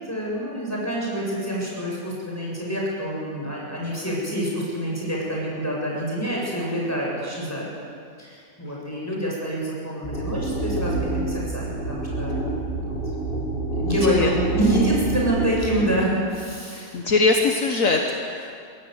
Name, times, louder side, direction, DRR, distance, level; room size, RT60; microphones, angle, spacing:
voice 1, 0.1-7.7 8.2-12.4 12.8-13.0 13.7-17.1, right 1 dB, 10° left, -4 dB, 7.3 m, -27 dB
sound 1, 10.0-15.9, right 2 dB, 40° left, 3.5 m, -27 dB
voice 2, 13.9-14.3 16.7-18.6, left 3 dB, 65° left, 2 dB, 1.7 m, -22 dB
22.5 x 17.0 x 8.2 m, 2.3 s
omnidirectional pair, 1.5 m